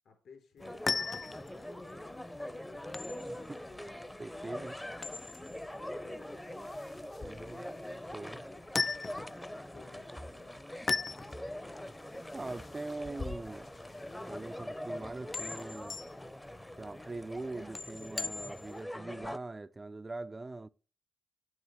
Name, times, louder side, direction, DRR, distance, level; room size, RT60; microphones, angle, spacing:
voice 1, 0.0-3.1 5.8-6.3 9.5-10.6, left 6 dB, 70° left, 3.5 m, -59 dB
sound 1, 0.6-18.8, left 4 dB, 40° left, 0.3 m, -41 dB
sound 2, 0.6-19.4, left 1 dB, 10° left, 0.7 m, -43 dB
voice 2, 4.2-4.8 7.2-7.7 8.1-8.4 12.1-13.7 14.3-16.0 16.8-20.7, right 2 dB, 30° right, 0.5 m, -42 dB
9.6 x 8.7 x 3.1 m
supercardioid pair, 50°, 0 cm